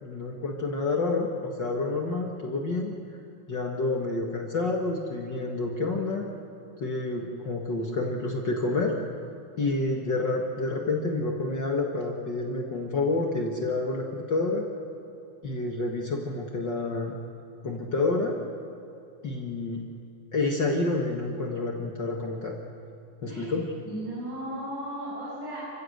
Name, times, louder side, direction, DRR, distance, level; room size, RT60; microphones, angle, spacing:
voice 1, 0.0-2.9 3.5-6.3 6.8-9.0 9.6-14.7 15.4-17.1 17.6-18.4 19.2-19.8 20.3-22.6 23.2-23.7, left 2 dB, 90° left, 0 dB, 0.9 m, -28 dB
voice 2, 23.8-25.6, right 1 dB, 75° right, -8 dB, 10.0 m, -35 dB
27.0 x 16.0 x 8.1 m, 2.8 s
omnidirectional pair, 5.1 m